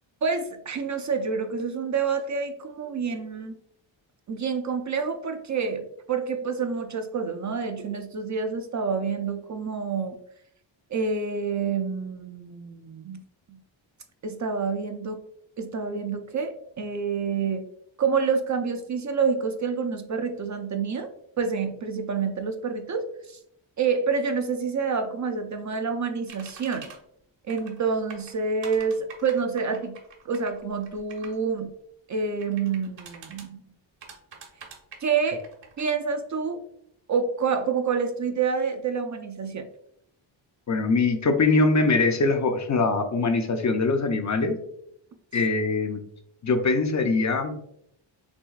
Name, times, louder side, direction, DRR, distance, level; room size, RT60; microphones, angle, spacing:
voice 1, 0.2-3.6 4.3-10.2 10.9-13.2 13.5-13.6 14.2-15.2 15.6-17.7 18.0-21.1 21.4-23.4 23.8-26.9 27.5-30.0 30.2-31.7 32.1-33.6 35.0-35.4 35.8-36.7 37.1-39.7, right 5 dB, 40° right, 6 dB, 0.4 m, -28 dB
sound 1, 26.3-27.0 27.5-27.8 28.1-31.4 32.4-33.5 34.0-35.9, right 5 dB, 65° right, 1.2 m, -45 dB
voice 2, 40.7-44.6 45.3-46.0 46.4-47.6, left 3 dB, 40° left, 6 dB, 0.5 m, -22 dB
6.1 x 3.4 x 2.4 m, 0.73 s
wide cardioid pair, 135°, 47 cm